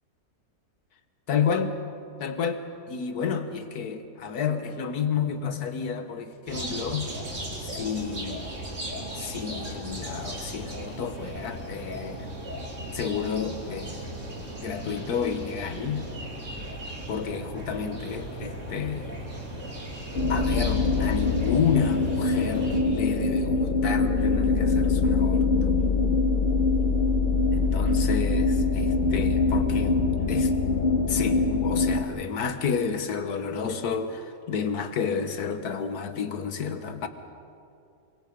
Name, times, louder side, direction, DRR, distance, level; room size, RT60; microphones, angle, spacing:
voice 1, 1.3-1.8 2.2-2.6 2.9-7.1 7.6-8.5 9.2-12.3 12.9-14.1 14.6-16.1 17.1-19.2 20.1-25.7 27.5-30.5 31.1-37.1, left 6 dB, 85° left, 8 dB, 1.8 m, -30 dB
sound 1, 6.5-22.8, right 1 dB, 55° right, 3.4 m, -37 dB
sound 2, 20.2-32.0, left 3 dB, 35° left, 1.3 m, -23 dB
25.5 x 24.0 x 5.1 m, 2.5 s
omnidirectional pair, 1.6 m